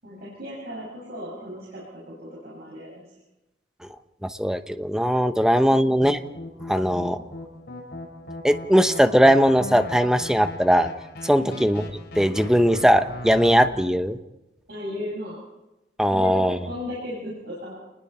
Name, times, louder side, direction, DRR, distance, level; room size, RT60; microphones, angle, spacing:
voice 1, 0.0-3.1 5.5-5.9 11.3-11.6 13.7-13.9 14.7-15.4 16.1-17.8, left 1 dB, 60° right, -6 dB, 6.7 m, -36 dB
voice 2, 4.2-6.2 6.7-7.2 8.4-10.9 11.2-11.8 12.2-14.2 16.0-16.6, equal, 5° right, 9 dB, 0.9 m, -19 dB
sound 1, 6.0-13.7, left 1 dB, 65° left, 5.2 m, -38 dB
29.0 x 20.5 x 4.4 m, 0.96 s
head